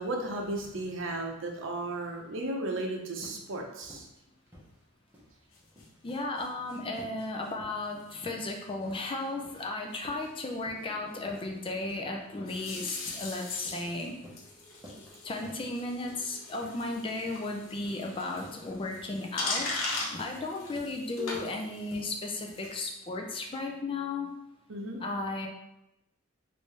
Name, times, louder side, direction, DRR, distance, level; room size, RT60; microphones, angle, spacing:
voice 1, 0.0-4.1 24.7-25.0, right 2 dB, 70° right, 1 dB, 0.7 m, -34 dB
sound 1, 3.2-3.5 3.8-4.2 4.5-5.4 5.6-6.0 6.3-6.6 7.0-7.2 7.6-7.9 8.2-8.5 8.8-9.1 9.4-9.7 10.0-10.9 11.3-11.5 11.9-12.1 12.5-12.7 13.0-13.3 13.6-13.9 14.2-14.5 14.8-15.1 15.4-15.7 16.0-16.2 16.6-16.9 17.3-17.5 17.8-18.0 18.4-18.7 19.0-19.2 19.5-19.9 20.1-20.4 20.8-21.0 21.3-21.6 21.9-22.2 22.5-22.7, equal, 10° right, 0.9 m, -51 dB
sound 2, 5.5-7.5 8.0-8.2 8.5-8.7 9.0-9.1 9.3-9.4 9.6-9.7 9.9-10.3 12.4-22.8, left 2 dB, 75° left, 0.8 m, -40 dB
voice 2, 6.0-14.2 15.2-24.3 25.0-25.5, left 2 dB, 25° left, 1 dB, 0.4 m, -35 dB
3.5 x 2.6 x 3.2 m, 0.88 s
head